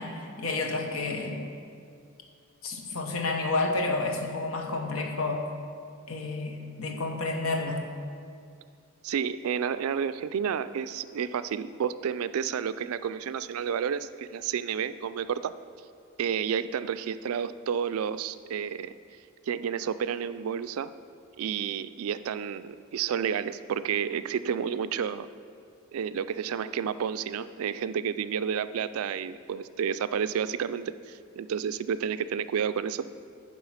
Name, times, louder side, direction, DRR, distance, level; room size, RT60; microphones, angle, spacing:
voice 1, 0.0-1.4 2.6-5.4 6.1-7.8, left 3 dB, 75° left, 3 dB, 1.1 m, -30 dB
voice 2, 9.0-15.5 16.2-18.9 19.5-20.9 21.4-25.3 25.9-33.0, right 7 dB, 80° right, 14 dB, 0.3 m, -30 dB
10.5 x 4.9 x 5.7 m, 2.3 s
head